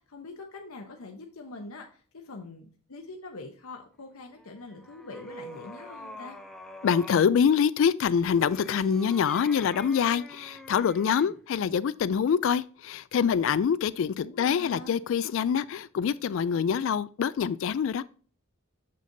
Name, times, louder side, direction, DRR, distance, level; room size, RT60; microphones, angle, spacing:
voice 1, 0.0-6.4 14.2-15.0, left 3 dB, 90° left, 0.9 m, -44 dB
sound 1, 4.3-7.3 8.2-11.4, equal, 5° left, 0.6 m, -45 dB
voice 2, 6.8-18.0, left 7 dB, 65° left, 0.3 m, -25 dB
6.7 x 6.4 x 2.6 m
head